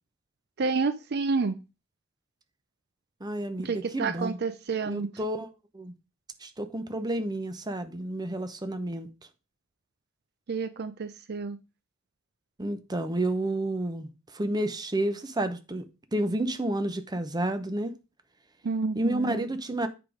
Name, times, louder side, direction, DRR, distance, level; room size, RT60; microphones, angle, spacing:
voice 1, 0.6-1.6 3.6-5.1 10.5-11.6 18.6-19.5, right 4 dB, 50° right, 0.5 m, -29 dB
voice 2, 3.2-4.4 4.8-5.5 5.7-5.9 6.4-9.1 12.6-15.8 16.1-17.9 18.9-19.9, right 1 dB, 20° right, 0.8 m, -30 dB
8.3 x 4.9 x 5.0 m
head